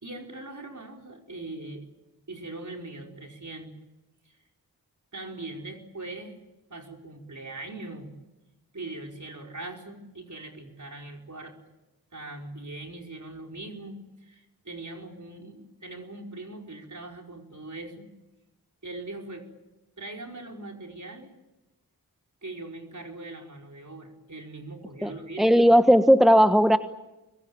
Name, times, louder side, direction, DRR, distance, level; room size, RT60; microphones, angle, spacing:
voice 1, 0.0-1.8 2.3-3.7 4.2-4.4 5.1-6.4 6.7-8.1 8.7-11.6 12.1-18.1 18.8-19.5 20.0-21.3 22.4-25.6, right 2 dB, 50° right, 2 dB, 5.1 m, -41 dB
voice 2, 25.4-26.8, equal, ahead, 8 dB, 1.3 m, -17 dB
25.5 x 22.5 x 9.0 m, 1.0 s
cardioid pair, 40°, 38 cm